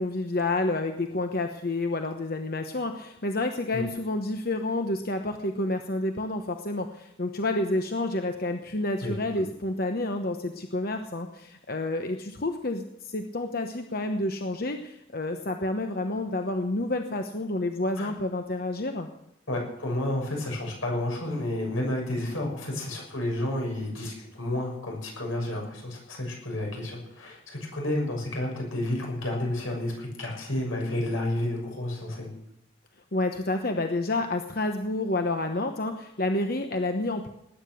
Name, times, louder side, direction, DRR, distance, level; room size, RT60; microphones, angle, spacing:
voice 1, 0.0-19.1 33.1-37.3, left 2 dB, 50° left, 5 dB, 1.0 m, -29 dB
voice 2, 9.0-9.5 18.0-18.1 19.5-32.3, left 1 dB, 85° left, 0 dB, 6.6 m, -31 dB
19.5 x 9.7 x 6.4 m, 0.81 s
head